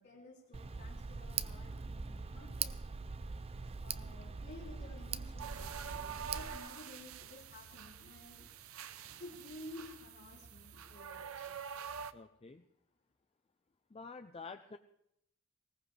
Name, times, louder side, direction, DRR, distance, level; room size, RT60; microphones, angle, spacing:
voice 1, 0.0-2.9 3.8-8.5 9.2-11.5, left 1 dB, 55° left, -8 dB, 3.3 m, -53 dB
Tick, 0.5-6.6, right 5 dB, 30° right, 0.5 m, -42 dB
sound 1, 5.4-12.1, right 7 dB, 80° right, 0.8 m, -46 dB
voice 2, 12.1-12.6 13.9-14.8, left 4 dB, 30° left, 8 dB, 0.5 m, -49 dB
20.0 x 17.5 x 3.3 m, 0.79 s
head